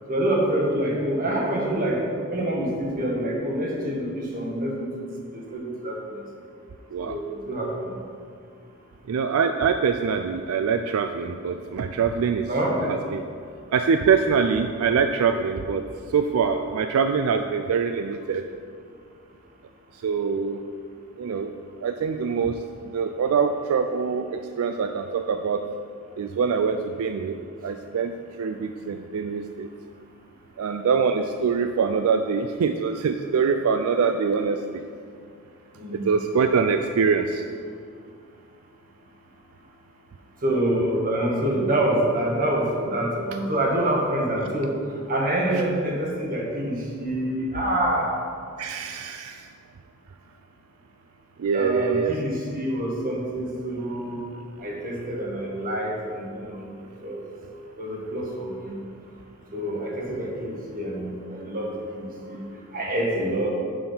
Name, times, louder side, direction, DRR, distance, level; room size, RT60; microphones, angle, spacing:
voice 1, 0.1-2.0 2.3-4.9 5.3-6.2 7.0-8.0 12.5-12.8 35.8-36.1 40.4-44.7 45.1-48.1 51.5-54.2 54.6-56.7 57.0-57.2 57.8-58.8 59.5-62.4 62.7-63.5, right 1 dB, 40° right, -2 dB, 1.5 m, -26 dB
voice 2, 9.1-12.5 12.9-13.2 13.7-15.8 16.1-18.4 20.0-20.6 21.2-21.5 21.8-22.6 22.9-25.6 26.2-29.7 30.6-34.8 35.9-37.4 48.6-49.5 51.4-52.1, right 6 dB, 75° right, 7 dB, 0.4 m, -24 dB
6.6 x 5.6 x 5.6 m, 2.3 s
head